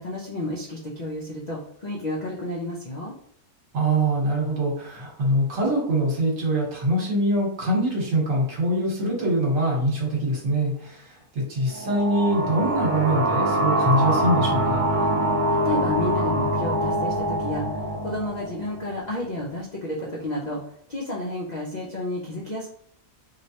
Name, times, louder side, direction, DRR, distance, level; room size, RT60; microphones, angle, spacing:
voice 1, 0.0-3.1 15.5-20.6 20.9-22.7, left 1 dB, 70° left, -4 dB, 0.4 m, -31 dB
voice 2, 3.7-14.8, right 1 dB, 60° right, -2 dB, 1.4 m, -24 dB
sound 1, 11.7-19.1, right 1 dB, 80° right, 1.1 m, -24 dB
3.1 x 2.8 x 2.8 m, 0.64 s
omnidirectional pair, 1.6 m